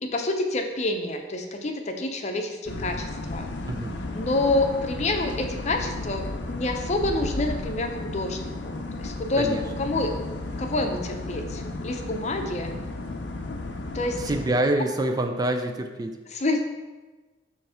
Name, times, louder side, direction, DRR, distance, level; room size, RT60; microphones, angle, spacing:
voice 1, 0.0-3.5 4.1-10.1 10.6-12.7 13.9-14.2 16.3-16.6, left 2 dB, 40° left, 4 dB, 0.6 m, -28 dB
sound 1, 2.7-14.5, left 2 dB, 80° left, 0.6 m, -34 dB
voice 2, 14.2-16.1, right 1 dB, 20° right, 6 dB, 0.4 m, -26 dB
6.9 x 3.2 x 5.6 m, 1.2 s
head